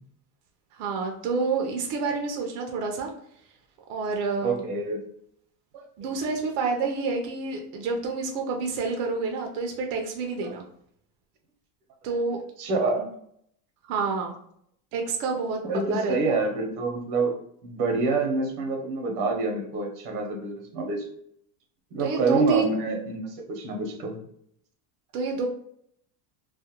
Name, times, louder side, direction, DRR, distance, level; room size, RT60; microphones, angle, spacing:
voice 1, 0.7-3.1 3.9-4.6 6.0-10.6 12.0-12.4 13.0-13.1 13.8-14.3 14.9-16.4 22.0-22.7 25.1-25.5, right 4 dB, 60° right, 2 dB, 0.6 m, -28 dB
voice 2, 4.4-5.0 5.7-5.8 10.4-10.5 12.6-13.0 15.6-17.3 17.6-21.1 21.9-24.1, right 3 dB, 90° right, 2 dB, 0.9 m, -27 dB
2.4 x 2.1 x 2.7 m, 0.69 s
cardioid pair, 145°, 46 cm